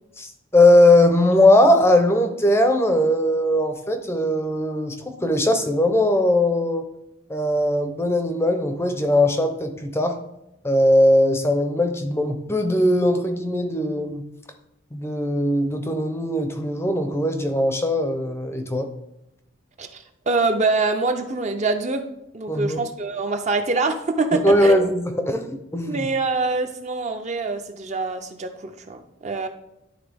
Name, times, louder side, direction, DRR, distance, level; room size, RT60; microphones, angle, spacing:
voice 1, 0.2-6.9 7.3-10.2 10.6-14.2 14.9-18.9 22.5-22.8 24.3-26.1, left 1 dB, 10° left, 6 dB, 0.5 m, -19 dB
voice 2, 19.8-22.1 22.3-24.8 25.9-29.5, right 3 dB, 35° right, 6 dB, 0.5 m, -24 dB
11.5 x 3.8 x 3.4 m, 0.86 s
head